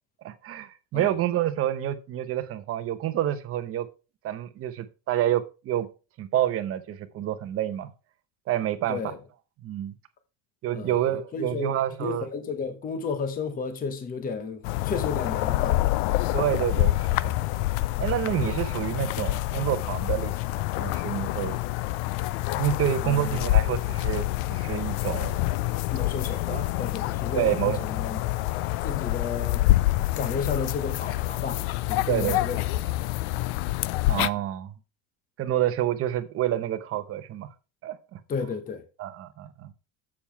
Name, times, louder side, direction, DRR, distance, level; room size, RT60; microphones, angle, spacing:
voice 1, 0.2-3.9 4.2-5.9 6.2-7.9 8.5-9.0 9.6-9.9 10.6-12.3 16.3-17.4 18.0-21.6 22.6-25.4 26.5-26.6 27.3-28.2 32.1-32.4 34.1-34.7 35.4-37.5 37.8-38.2 39.0-39.7, right 12 dB, 35° right, 0.9 m, -28 dB
voice 2, 10.7-11.7 12.0-15.8 23.0-23.4 25.9-28.2 28.8-29.7 30.2-31.6 31.9-32.6 38.3-38.8, left 5 dB, 20° left, 1.0 m, -33 dB
sound 1, 14.6-34.3, left 17 dB, 60° left, 0.5 m, -27 dB
7.3 x 6.9 x 4.5 m
cardioid pair, 160°, 42 cm